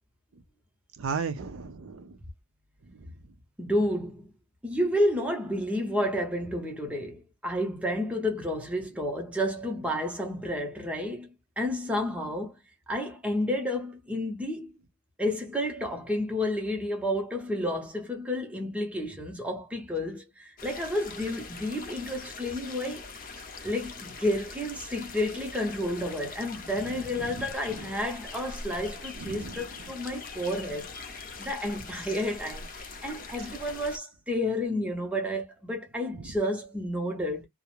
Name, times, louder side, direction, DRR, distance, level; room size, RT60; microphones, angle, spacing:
voice 1, 1.0-2.2 2.9-3.1 26.8-27.9 29.2-29.7 36.1-36.2, right 5 dB, 60° right, 0.4 m, -36 dB
voice 2, 3.6-4.3 4.6-12.5 12.9-14.7 15.2-23.0 23.6-30.9 31.4-32.6 33.0-37.5, left 1 dB, 5° right, 0.6 m, -30 dB
sound 1, 20.6-34.0, left 4 dB, 40° left, 0.5 m, -42 dB
2.4 x 2.0 x 2.9 m
head